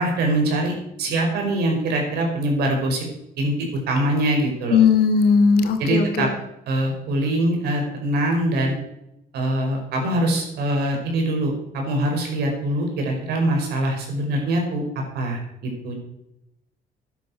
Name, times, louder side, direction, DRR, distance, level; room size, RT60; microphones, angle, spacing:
voice 1, 0.0-3.1 3.4-4.8 5.8-6.3 6.7-8.7 9.3-14.8 15.1-15.9, right 1 dB, 75° right, 2 dB, 5.1 m, -23 dB
voice 2, 4.7-6.3, left 6 dB, 70° left, 7 dB, 2.6 m, -17 dB
12.5 x 10.0 x 6.4 m, 0.85 s
cardioid pair, 110°, 17 cm